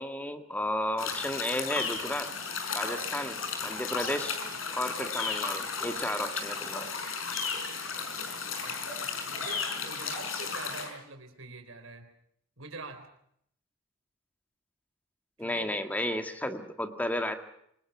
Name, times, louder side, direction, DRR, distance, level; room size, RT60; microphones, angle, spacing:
voice 1, 0.0-2.3 2.7-4.4 4.7-6.9 15.4-17.4, left 1 dB, 10° left, 6 dB, 1.8 m, -33 dB
sound 1, 1.0-10.9, left 5 dB, 75° left, 5.4 m, -34 dB
voice 2, 8.5-12.1 12.6-13.1 15.4-15.8, right 3 dB, 80° right, 7 dB, 4.2 m, -46 dB
26.5 x 21.5 x 5.9 m, 0.70 s
head